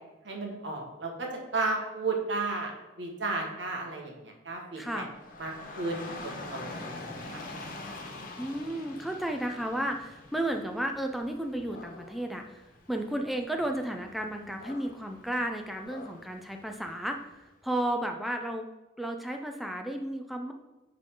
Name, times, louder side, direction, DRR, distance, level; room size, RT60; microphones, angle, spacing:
voice 1, 0.2-2.7 3.0-5.0 5.4-7.0 7.3-7.4, right 3 dB, 90° right, 0 dB, 1.6 m, -33 dB
voice 2, 4.8-5.1 8.4-12.6 12.9-18.7 19.0-20.5, right 1 dB, ahead, 3 dB, 0.4 m, -33 dB
Dog / Rain, 5.1-17.3, left 2 dB, 50° left, 0.9 m, -45 dB
9.9 x 3.8 x 3.8 m, 1.1 s
head